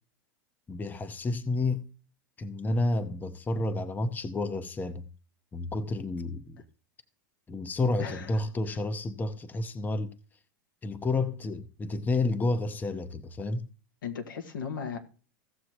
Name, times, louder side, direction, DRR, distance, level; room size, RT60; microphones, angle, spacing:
voice 1, 0.7-1.8 2.4-5.1 5.5-6.6 7.5-10.1 10.8-13.7, left 2 dB, 15° left, 0.8 m, -30 dB
voice 2, 8.0-8.3 8.7-8.8 14.0-15.0, left 6 dB, 85° left, 1.9 m, -36 dB
16.5 x 6.8 x 3.0 m
hypercardioid pair, 115°, 11 cm